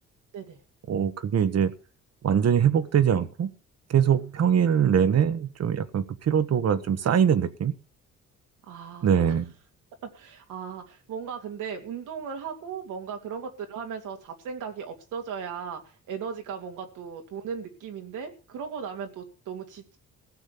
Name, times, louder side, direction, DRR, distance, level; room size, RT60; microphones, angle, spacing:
voice 1, 0.9-1.7 2.2-3.5 3.9-7.7 9.0-9.5, right 8 dB, 55° right, 1.4 m, -22 dB
voice 2, 8.6-9.3 10.1-20.0, right 6 dB, 85° right, 2.8 m, -37 dB
16.5 x 6.4 x 8.6 m
cardioid pair, 90°, 30 cm